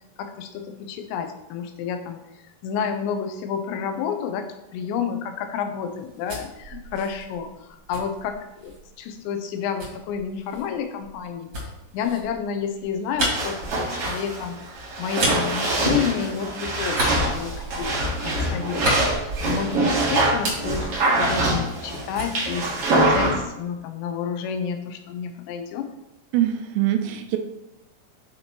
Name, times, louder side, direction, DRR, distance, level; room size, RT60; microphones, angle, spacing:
voice 1, 0.2-2.2 2.6-4.5 4.7-11.5 11.9-14.6 15.0-20.9 21.2-25.9, left 7 dB, 90° left, 6 dB, 2.9 m, -30 dB
sound 1, 5.9-8.9 9.8-16.5 16.8-19.9 20.2-21.9 22.1-23.5, right 1 dB, 40° right, 1.7 m, -32 dB
sound 2, 13.3-23.4, right 2 dB, 65° right, 1.4 m, -24 dB
voice 2, 26.3-27.4, right 12 dB, 80° right, 6 dB, 2.7 m, -23 dB
9.5 x 4.4 x 2.9 m, 0.94 s
omnidirectional pair, 5.1 m